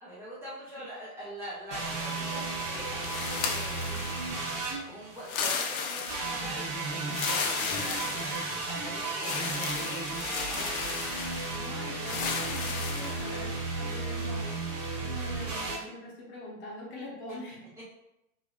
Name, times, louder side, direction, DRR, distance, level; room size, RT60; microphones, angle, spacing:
voice 1, 0.0-4.3 4.8-11.0, equal, 5° right, -10 dB, 0.4 m, -44 dB
sound 1, 1.7-5.4 6.1-15.8, right 3 dB, 55° right, 1.4 m, -34 dB
sound 2, 3.0-4.5 5.2-6.5 7.1-8.7 9.2-11.6 12.0-13.3, left 5 dB, 65° left, 0.7 m, -34 dB
voice 2, 11.5-14.4 15.0-17.6, left 1 dB, 25° left, -3 dB, 0.8 m, -43 dB
3.6 x 2.5 x 2.3 m, 0.87 s
hypercardioid pair, 135°, 44 cm